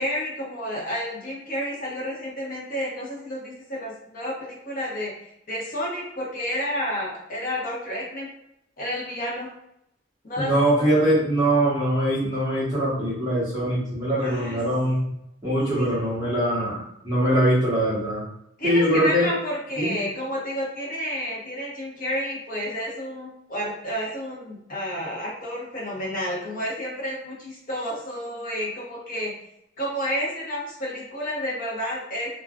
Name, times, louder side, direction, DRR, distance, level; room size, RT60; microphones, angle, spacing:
voice 1, 0.0-8.3 8.8-9.5 10.2-10.9 14.2-14.6 15.8-16.7 18.6-29.3 29.8-32.3, equal, 50° left, -4 dB, 0.9 m, -30 dB
voice 2, 10.4-15.0 15.4-18.2 18.6-19.3 19.8-20.0, right 1 dB, 15° right, -12 dB, 1.2 m, -22 dB
3.4 x 2.3 x 2.3 m, 0.79 s
head